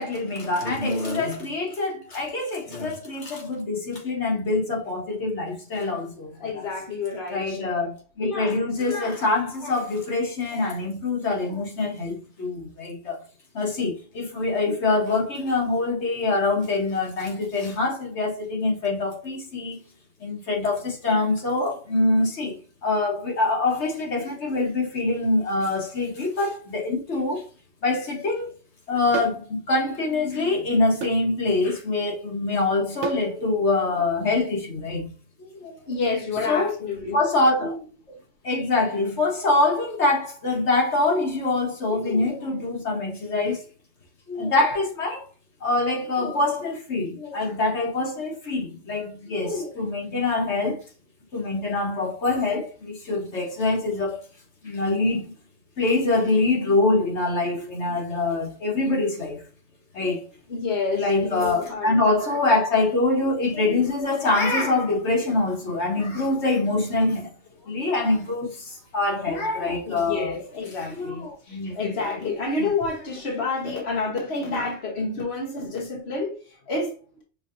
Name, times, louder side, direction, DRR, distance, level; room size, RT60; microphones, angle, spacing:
voice 1, 0.0-6.7 7.3-13.2 13.5-19.8 20.2-22.5 22.8-27.4 27.8-28.5 28.9-35.1 35.4-35.8 36.5-36.7 37.1-37.8 38.4-43.6 44.3-45.3 45.6-50.8 51.3-54.2 54.6-55.3 55.8-59.4 59.9-60.3 61.0-67.3 67.7-70.3 70.9-71.7 72.6-72.7, left 2 dB, 85° left, 1.7 m, -24 dB
voice 2, 6.4-7.9 35.9-37.2 60.5-62.1 67.6-67.7 69.8-77.2, left 3 dB, 70° left, 1.3 m, -29 dB
sound 1, 29.1-29.4 31.0-31.2 33.0-33.3, right 9 dB, 90° right, 1.0 m, -29 dB
6.1 x 2.8 x 2.5 m
omnidirectional pair, 1.1 m